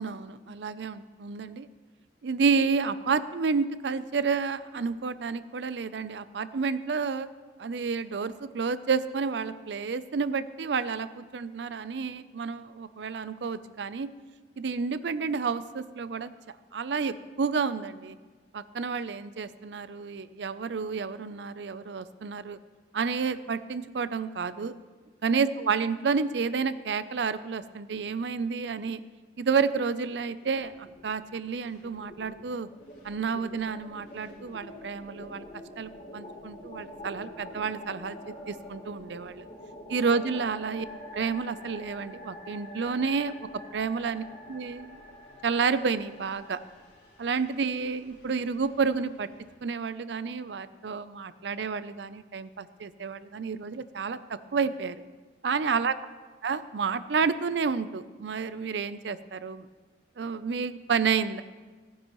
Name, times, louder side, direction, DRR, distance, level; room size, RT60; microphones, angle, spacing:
voice 1, 0.0-1.7 2.2-7.3 7.6-14.1 14.6-16.3 16.7-18.2 18.5-22.6 22.9-24.8 25.2-29.0 29.4-32.7 33.0-35.4 35.8-38.2 38.5-39.4 39.9-40.9 41.1-43.3 43.7-45.0 45.4-46.6 47.2-49.3 49.6-55.0 55.4-56.0 56.4-59.7 60.2-61.4, right 5 dB, 75° right, 14 dB, 0.5 m, -30 dB
sound 1, 30.4-31.2 31.5-49.5, left 1 dB, 40° left, 3.3 m, -46 dB
17.5 x 10.0 x 3.0 m, 1.4 s
head